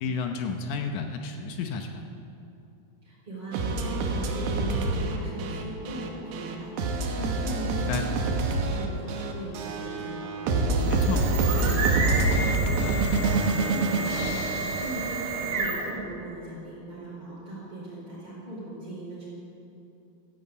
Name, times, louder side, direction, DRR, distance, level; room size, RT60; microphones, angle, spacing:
voice 1, 0.0-2.0 7.9-8.1 10.9-11.2, left 5 dB, 75° left, 5 dB, 1.9 m, -31 dB
voice 2, 3.0-11.7 12.1-19.3, right 1 dB, 35° right, -10 dB, 5.5 m, -39 dB
sound 1, 3.5-15.5, right 3 dB, 85° right, 3.3 m, -27 dB
sound 2, 10.7-16.0, right 3 dB, 60° right, 3.3 m, -31 dB
14.5 x 11.0 x 8.6 m, 2.7 s
omnidirectional pair, 4.5 m